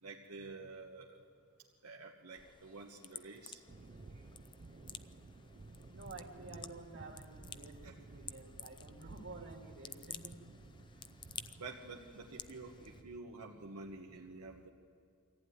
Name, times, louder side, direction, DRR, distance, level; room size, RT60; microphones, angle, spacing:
voice 1, 0.0-1.2 1.8-3.6 7.8-8.0 11.6-14.7, right 3 dB, 85° right, -1 dB, 1.3 m, -49 dB
sound 1, 2.3-13.0, left 7 dB, 20° left, 0.4 m, -53 dB
sound 2, 3.7-13.2, right 2 dB, 35° right, 0.5 m, -55 dB
voice 2, 5.9-10.4, right 3 dB, 55° right, 1 dB, 2.4 m, -51 dB
23.5 x 15.0 x 9.6 m, 2.4 s
head